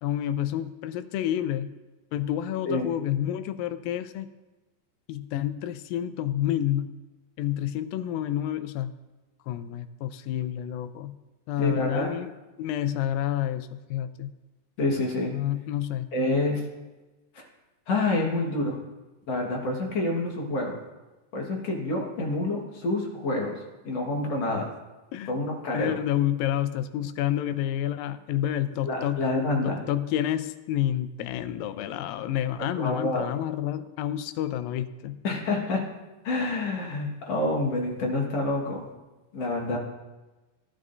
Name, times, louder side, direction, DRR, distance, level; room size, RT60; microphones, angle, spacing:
voice 1, 0.0-1.7 2.1-4.3 5.1-6.9 7.4-8.9 9.5-11.1 11.5-12.3 12.6-14.3 15.3-16.1 25.1-25.3 25.7-29.2 29.6-35.2, left 11 dB, 90° left, 12 dB, 2.4 m, -29 dB
voice 2, 11.6-12.1 14.8-15.3 16.1-16.6 17.3-17.4 17.9-18.8 19.3-20.8 21.3-24.7 25.3-26.0 28.8-29.8 32.8-33.3 35.2-35.8 36.2-38.9 39.3-39.8, left 2 dB, 55° left, -1 dB, 2.4 m, -27 dB
16.5 x 11.0 x 2.6 m, 1.1 s
omnidirectional pair, 4.0 m